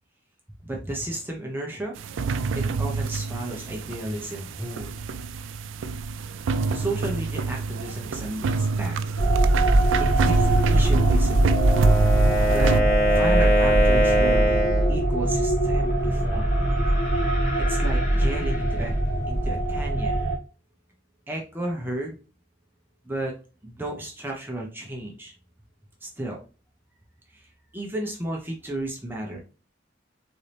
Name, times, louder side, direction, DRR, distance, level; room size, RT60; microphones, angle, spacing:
voice 1, 0.6-1.9 2.5-5.0 6.7-9.0 10.0-11.7 12.4-12.7 13.0-16.5 17.6-18.9 19.3-20.2 21.3-22.2 23.0-23.3 23.6-25.3 26.0-26.4 27.3-27.5 27.7-29.4, right 1 dB, 10° right, 0 dB, 0.6 m, -33 dB
sound 1, 2.0-12.8, right 4 dB, 90° right, 0.4 m, -27 dB
sound 2, 9.2-20.4, right 1 dB, 80° left, 1.8 m, -22 dB
Wind instrument woodwind instrument, 11.4-15.0, right 1 dB, 50° left, 1.2 m, -22 dB
4.0 x 2.7 x 3.2 m, 0.34 s
head